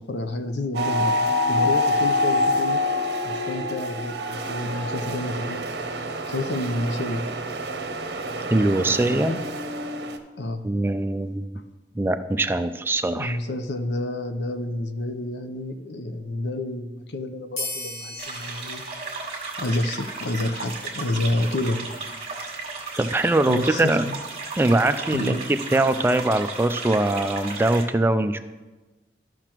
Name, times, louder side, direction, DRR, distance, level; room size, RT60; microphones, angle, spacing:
voice 1, 0.0-2.8 3.2-5.6 6.3-7.3 9.1-9.4 10.4-10.6 13.1-18.8 19.6-21.8 23.5-24.2 25.1-25.4, left 1 dB, 80° left, 8 dB, 0.7 m, -29 dB
sound 1, 0.7-10.2, left 1 dB, 70° right, 0.8 m, -26 dB
voice 2, 8.5-9.3 10.6-11.5 12.0-13.4 23.0-24.0 24.6-28.4, right 2 dB, 15° right, 9 dB, 0.3 m, -22 dB
sound 2, 17.6-20.6, left 2 dB, 45° left, 1.6 m, -37 dB
sound 3, 18.2-27.8, right 3 dB, 35° right, 1.5 m, -34 dB
13.5 x 5.9 x 3.0 m, 1.2 s
head